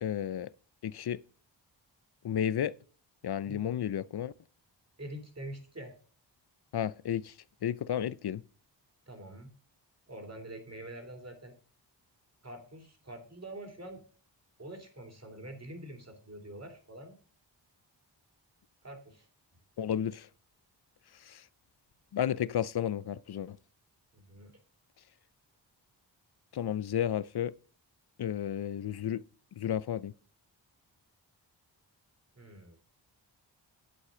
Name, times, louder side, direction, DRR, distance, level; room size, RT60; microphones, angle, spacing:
voice 1, 0.0-0.5 0.8-1.2 2.2-2.7 3.2-4.3 6.7-7.4 7.6-8.4 19.8-20.3 21.1-21.5 22.1-23.6 26.5-27.5 28.2-29.2 29.5-30.1, left 9 dB, 60° left, 0.6 m, -32 dB
voice 2, 3.4-3.8 5.0-6.0 9.1-9.5 10.1-11.5 12.4-14.0 14.6-17.2 18.8-19.3 24.1-24.6 32.4-32.8, right 1 dB, 35° right, 3.5 m, -45 dB
11.5 x 8.1 x 3.9 m
cardioid pair, 60°, 44 cm